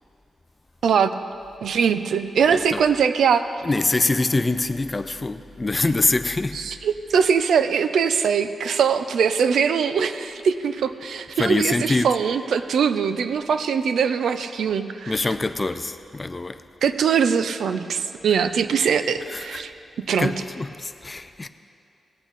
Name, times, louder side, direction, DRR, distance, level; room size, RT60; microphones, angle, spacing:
voice 1, 0.8-1.1 1.6-3.4 6.5-15.1 16.8-19.7 20.0-20.3, right 6 dB, 80° right, 10 dB, 0.5 m, -22 dB
voice 2, 3.6-6.6 11.4-12.2 15.1-16.6 19.3-19.6 20.2-21.5, left 2 dB, 20° left, 11 dB, 0.4 m, -24 dB
18.5 x 8.3 x 4.0 m, 2.5 s
wide cardioid pair, 145°, 0 cm